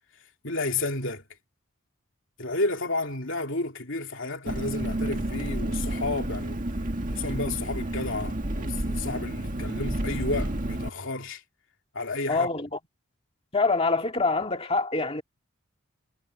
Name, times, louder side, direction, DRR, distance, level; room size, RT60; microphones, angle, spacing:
voice 1, 0.4-1.2 2.4-6.6 7.1-11.4 11.9-12.5, left 2 dB, 60° left, 3.3 m, -31 dB
Engine, 4.5-10.9, right 1 dB, 40° right, 2.0 m, -30 dB
voice 2, 12.3-12.8 13.5-15.2, left 3 dB, 25° left, 2.1 m, -25 dB
head